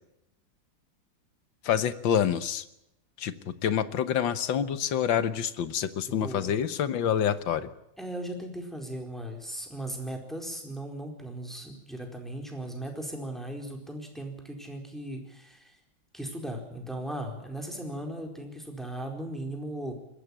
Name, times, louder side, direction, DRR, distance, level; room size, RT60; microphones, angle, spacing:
voice 1, 1.6-2.6 3.2-7.7, left 9 dB, 70° left, 13 dB, 1.8 m, -27 dB
voice 2, 6.2-6.5 8.0-15.8 16.1-19.9, right 1 dB, ahead, 2 dB, 4.3 m, -37 dB
21.0 x 15.5 x 9.9 m, 0.84 s
omnidirectional pair, 2.2 m